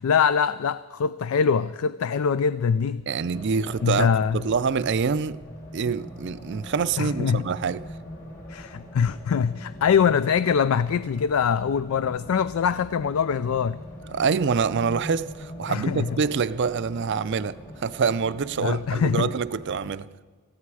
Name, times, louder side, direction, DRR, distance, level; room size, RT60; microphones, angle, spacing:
voice 1, 0.0-3.0 3.8-4.4 7.0-7.5 8.5-13.8 15.7-16.1 18.6-19.3, left 6 dB, 70° left, 0.4 m, -23 dB
voice 2, 3.1-4.1 4.3-5.4 5.7-7.8 14.1-20.1, right 5 dB, 50° right, 0.5 m, -26 dB
Race car auto racing, 3.3-19.9, equal, 40° left, 4.0 m, -42 dB
18.5 x 15.0 x 4.8 m
head